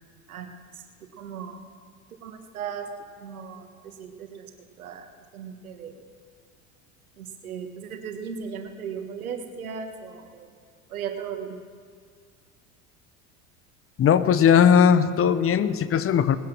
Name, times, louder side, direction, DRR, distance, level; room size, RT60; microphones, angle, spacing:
voice 1, 1.0-1.6 2.1-2.9 3.2-4.5 4.8-6.0 7.2-10.5 10.9-11.6, right 7 dB, 90° right, 6 dB, 1.5 m, -37 dB
voice 2, 14.0-16.4, left 7 dB, 30° left, 14 dB, 0.8 m, -18 dB
19.0 x 10.5 x 6.2 m, 2.1 s
hypercardioid pair, 85°, 42 cm